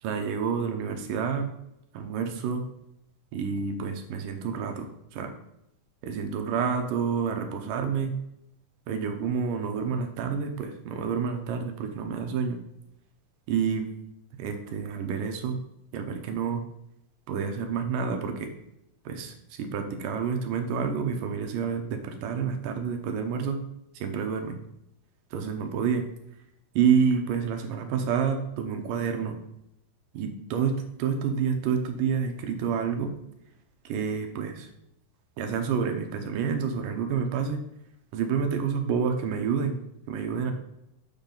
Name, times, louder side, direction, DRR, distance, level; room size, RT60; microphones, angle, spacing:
voice 1, 0.0-1.5 1.9-2.6 3.3-5.3 6.0-8.1 8.9-12.6 13.5-13.9 14.4-15.6 15.9-16.6 17.3-18.5 19.1-23.6 23.9-24.6 25.3-26.0 26.8-29.4 30.1-33.1 33.8-34.7 35.4-37.6 38.1-39.8 40.1-40.5, right 6 dB, 75° right, 5 dB, 2.4 m, -28 dB
7.2 x 7.1 x 3.8 m, 0.81 s
omnidirectional pair, 4.1 m